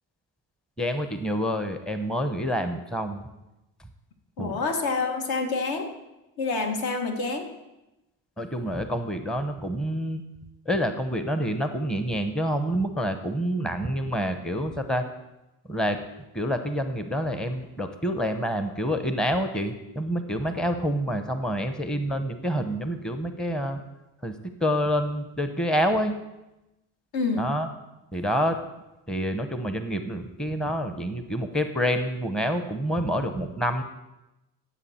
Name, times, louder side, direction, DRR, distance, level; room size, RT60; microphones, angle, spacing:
voice 1, 0.8-3.2 4.4-4.6 8.4-10.2 10.7-15.1 15.7-16.0 16.3-23.8 24.2-26.1 27.4-27.7 28.1-28.6 29.1-33.8, equal, ahead, 8 dB, 0.8 m, -27 dB
voice 2, 4.4-5.9 6.4-7.5 27.1-27.6, left 4 dB, 60° left, 4 dB, 1.7 m, -27 dB
15.0 x 7.5 x 4.3 m, 0.97 s
cardioid pair, 85°, 42 cm